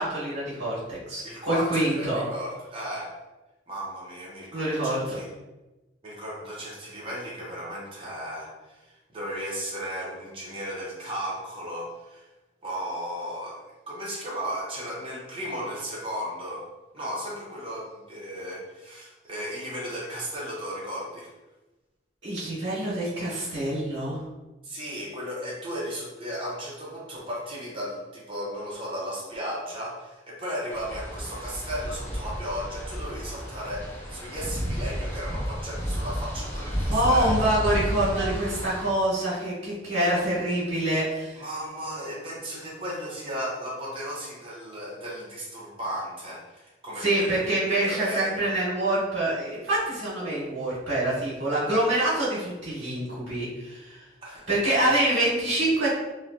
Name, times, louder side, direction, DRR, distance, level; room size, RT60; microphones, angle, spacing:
voice 1, 0.0-2.2 4.5-5.2 22.2-24.2 36.9-41.4 47.0-54.0 54.5-55.9, right 1 dB, 70° right, -10 dB, 1.3 m, -26 dB
voice 2, 1.2-3.1 3.7-5.3 6.0-12.3 12.6-13.6 13.9-16.7 16.9-21.3 24.6-37.5 41.3-48.6 54.2-54.9, equal, 30° right, -5 dB, 0.7 m, -35 dB
sound 1, 30.7-38.9, equal, 10° left, 0.4 m, -32 dB
3.1 x 2.3 x 2.5 m, 1.1 s
head